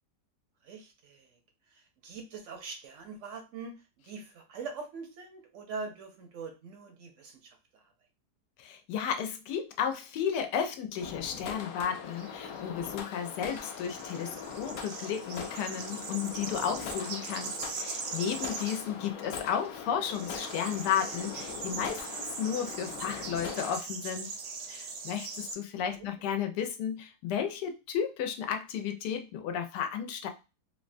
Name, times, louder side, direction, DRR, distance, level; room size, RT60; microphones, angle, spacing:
voice 1, 0.6-1.3 1.7-7.9 17.3-17.6 26.0-26.1, right 4 dB, 65° right, 4 dB, 0.8 m, -43 dB
voice 2, 8.6-24.3 24.7-30.3, left 8 dB, 90° left, 5 dB, 1.2 m, -33 dB
sound 1, 11.0-23.8, left 6 dB, 70° left, 0.8 m, -41 dB
sound 2, 12.1-25.5, right 5 dB, 85° right, 1.3 m, -41 dB
3.4 x 2.1 x 2.5 m, 0.29 s
omnidirectional pair, 1.7 m